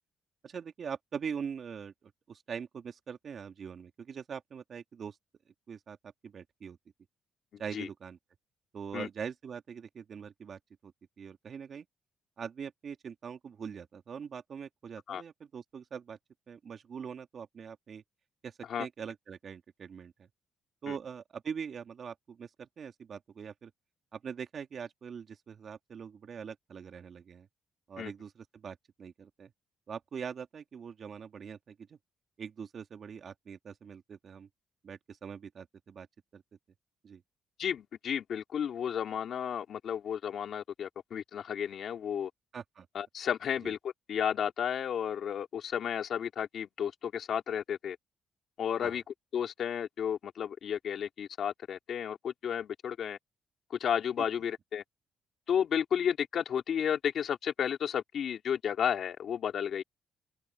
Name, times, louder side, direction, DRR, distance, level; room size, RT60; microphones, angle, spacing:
voice 1, 0.4-5.2 5.7-6.8 7.6-8.2 8.7-10.9 11.2-11.9 12.4-16.2 16.5-18.0 18.4-20.3 20.8-23.7 24.1-27.5 27.9-29.5 29.9-32.0 32.4-34.5 34.8-36.1 36.3-36.4 37.0-37.2 42.5-42.9 43.6-43.7 48.8-49.0 54.2-54.3, right 7 dB, 50° right, 2.3 m, -43 dB
voice 2, 7.5-7.9 8.9-9.1 15.1-15.2 18.7-18.9 20.9-21.0 28.0-28.1 37.6-42.3 42.9-48.0 48.6-49.0 49.3-53.2 53.8-54.8 55.5-59.8, left 8 dB, 65° left, 2.8 m, -32 dB
cardioid pair, 90°, 0 cm